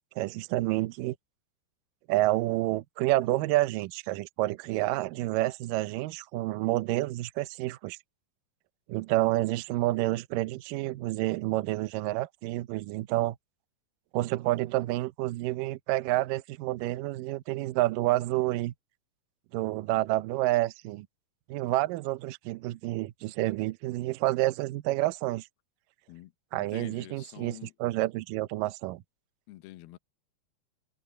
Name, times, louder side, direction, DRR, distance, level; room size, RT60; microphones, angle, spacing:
voice 1, 0.2-1.2 2.1-8.0 8.9-13.4 14.1-18.7 19.5-21.1 21.5-25.5 26.5-29.0, right 17 dB, 90° right, 1.9 m, -29 dB
voice 2, 26.1-27.7 29.5-30.0, left 17 dB, 75° left, 2.7 m, -47 dB
omnidirectional pair, 4.8 m